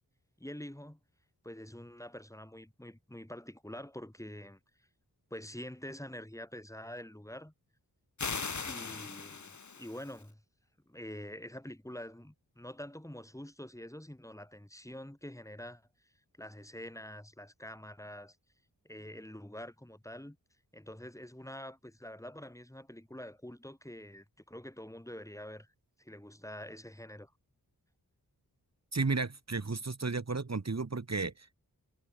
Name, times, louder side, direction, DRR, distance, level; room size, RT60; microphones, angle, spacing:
voice 1, 0.4-1.0 1.4-4.6 5.3-7.5 8.6-10.4 10.9-16.1 16.4-18.4 18.8-20.4 20.7-25.7 26.0-27.3, left 1 dB, 10° left, 5.3 m, -46 dB
sound 1, 8.2-10.2, left 5 dB, 50° left, 2.0 m, -39 dB
voice 2, 28.9-31.5, right 4 dB, 45° right, 3.4 m, -33 dB
wide cardioid pair, 75°, 37 cm